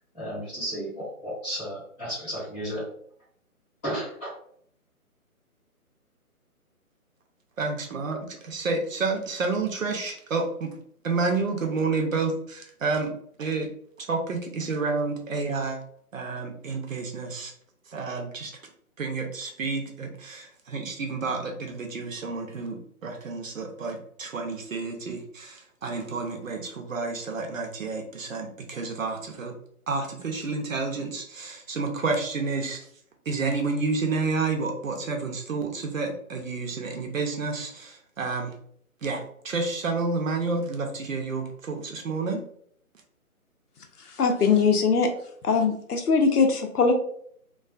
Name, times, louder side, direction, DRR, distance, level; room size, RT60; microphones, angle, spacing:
voice 1, 0.1-2.8 3.8-4.3, equal, 10° left, -10 dB, 0.9 m, -33 dB
voice 2, 7.6-8.2 8.4-10.7 11.0-13.7 14.0-15.8 16.1-17.5 17.9-18.5 19.0-29.5 29.9-32.8 33.3-38.5 39.0-42.4, right 4 dB, 60° right, 2 dB, 0.7 m, -30 dB
voice 3, 44.1-45.1 45.4-46.9, left 5 dB, 85° left, 5 dB, 0.7 m, -21 dB
2.3 x 2.3 x 2.4 m, 0.63 s
figure-of-eight pair, 155°, 44 cm